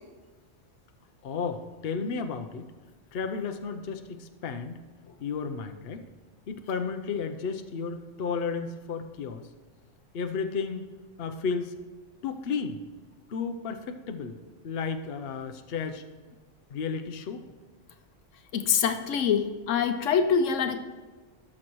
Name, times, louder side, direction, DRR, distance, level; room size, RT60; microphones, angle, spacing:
voice 1, 1.2-2.7 3.1-4.8 5.2-6.0 6.5-9.4 10.1-10.9 11.2-11.8 12.2-12.8 13.3-14.4 14.6-16.1 16.7-17.5, left 5 dB, 60° left, 7 dB, 0.8 m, -33 dB
voice 2, 18.5-20.8, left 7 dB, 85° left, 8 dB, 1.1 m, -25 dB
17.5 x 6.3 x 3.0 m, 1.3 s
omnidirectional pair, 1.2 m